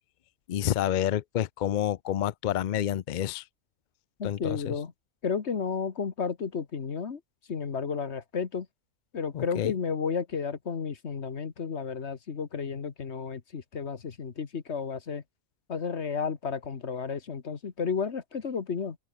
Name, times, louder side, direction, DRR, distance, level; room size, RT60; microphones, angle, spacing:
voice 1, 0.5-3.4 4.2-4.8 9.3-9.7, left 11 dB, 80° left, 0.4 m, -29 dB
voice 2, 4.2-4.9 5.2-7.2 7.5-8.7 9.1-15.2 15.7-19.0, left 6 dB, 50° left, 1.7 m, -32 dB
open air
omnidirectional pair, 1.5 m